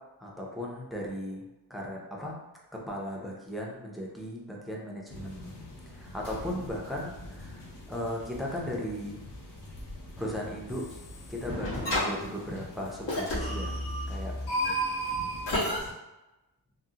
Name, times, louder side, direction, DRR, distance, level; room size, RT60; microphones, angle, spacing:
voice 1, 0.2-1.4 1.7-2.4 2.7-5.6 5.9-9.2 10.2-10.8 11.3-13.8 14.1-14.4 14.7-15.1, equal, ahead, -3 dB, 0.4 m, -37 dB
sound 1, 5.1-15.9, left 1 dB, 50° left, 0.9 m, -46 dB
sound 2, 10.7-11.2 11.5-12.1 13.1-15.8, equal, 80° left, 1.3 m, -31 dB
3.7 x 2.0 x 2.7 m, 1.0 s
wide cardioid pair, 165°, 41 cm